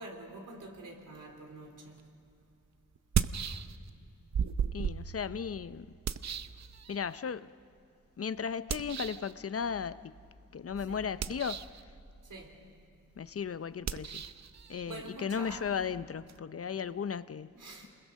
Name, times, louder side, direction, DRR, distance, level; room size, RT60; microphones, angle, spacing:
voice 1, 0.0-2.1 10.9-11.0 12.2-12.6 14.9-15.7 17.5-17.9, right 2 dB, 80° right, 3.6 m, -46 dB
sound 1, 2.0-2.1 2.9-4.0 4.3-7.2 8.7-9.3 11.1-11.8 13.8-16.4, right 7 dB, 60° right, 0.7 m, -36 dB
voice 2, 4.7-5.9 6.9-7.5 8.2-10.2 10.5-11.6 13.2-14.2 14.7-17.5, left 7 dB, 50° left, 0.6 m, -36 dB
27.5 x 21.5 x 6.4 m
cardioid pair, 75°, 31 cm